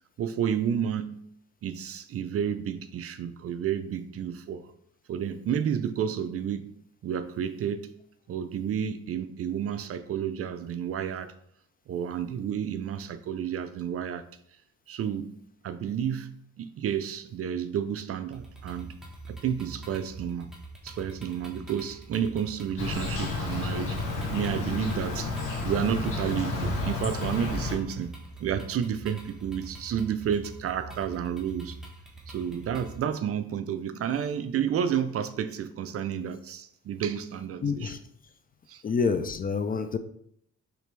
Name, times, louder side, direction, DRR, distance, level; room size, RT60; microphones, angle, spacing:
voice 1, 0.2-1.2 1.6-4.7 5.1-6.7 7.0-7.9 8.3-11.3 11.9-14.2 14.9-15.3 15.6-18.9 19.3-20.5 20.8-24.0 24.3-25.3 25.6-28.1 28.4-31.8 32.3-38.0 38.7-38.8, right 8 dB, 50° right, 0.4 m, -31 dB
sound 1, 18.3-33.0, right 3 dB, ahead, 1.2 m, -44 dB
Insect, 22.8-27.8, left 3 dB, 80° left, 1.4 m, -31 dB
voice 2, 37.6-38.0 38.8-40.0, left 5 dB, 30° left, 0.4 m, -27 dB
4.9 x 3.4 x 3.2 m
cardioid pair, 90°, 30 cm